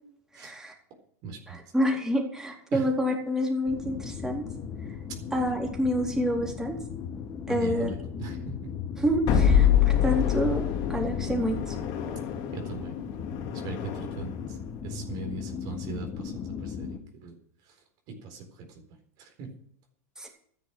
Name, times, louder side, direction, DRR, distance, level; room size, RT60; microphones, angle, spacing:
voice 1, 0.3-0.7 1.5-4.4 5.3-6.8 7.5-7.9 9.0-10.6 10.9-11.7 20.2-20.3, equal, 5° right, -1 dB, 4.1 m, -28 dB
voice 2, 1.2-1.6 2.7-2.9 7.5-8.6 12.5-12.9 13.6-14.3 14.8-17.3 18.1-18.8 19.2-19.5, right 3 dB, 50° right, 4 dB, 4.1 m, -39 dB
sound 1, 3.7-17.0, left 6 dB, 30° left, 1.9 m, -37 dB
sound 2, 9.3-14.4, left 9 dB, 50° left, 2.6 m, -26 dB
13.5 x 10.5 x 6.3 m, 0.67 s
hypercardioid pair, 100°, 9 cm